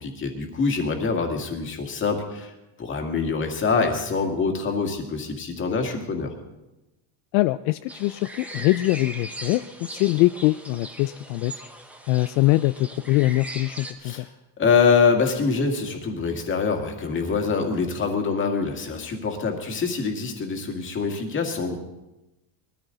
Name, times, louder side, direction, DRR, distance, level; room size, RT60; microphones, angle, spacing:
voice 1, 0.0-2.5 2.8-6.3 14.0-14.3 14.6-21.8, left 5 dB, 25° left, 3 dB, 2.1 m, -24 dB
voice 2, 7.3-11.6 12.1-14.3, left 19 dB, 70° left, 12 dB, 0.5 m, -23 dB
sound 1, 7.9-13.9, right 1 dB, 5° right, 0.7 m, -39 dB
21.0 x 14.0 x 3.9 m, 1.0 s
cardioid pair, 160°, 46 cm